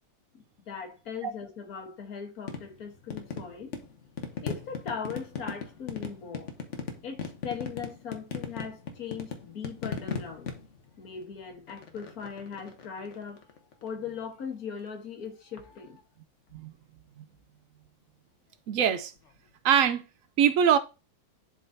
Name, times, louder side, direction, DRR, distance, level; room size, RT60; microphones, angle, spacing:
voice 1, 0.3-3.7 4.4-6.5 7.0-10.5 11.0-13.4 13.8-16.0, left 6 dB, 75° left, 1.8 m, -39 dB
sound 1, 2.5-13.9 15.6-16.0 19.2-19.3, left 5 dB, 55° left, 1.2 m, -39 dB
voice 2, 18.7-19.1 19.6-20.0 20.4-20.8, right 8 dB, 70° right, 0.9 m, -23 dB
11.0 x 3.7 x 2.7 m
omnidirectional pair, 1.6 m